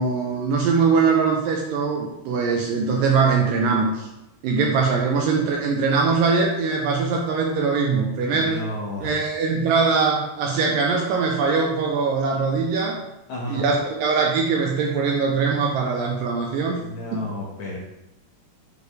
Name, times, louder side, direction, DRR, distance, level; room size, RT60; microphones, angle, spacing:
voice 1, 0.0-4.1 4.4-8.6 9.0-13.0 13.5-16.8 17.1-17.3, right 4 dB, 80° right, 0 dB, 2.1 m, -22 dB
voice 2, 8.3-9.2 13.3-13.6 16.7-17.8, left 1 dB, 60° left, -5 dB, 2.2 m, -32 dB
8.3 x 4.7 x 3.3 m, 0.92 s
omnidirectional pair, 4.5 m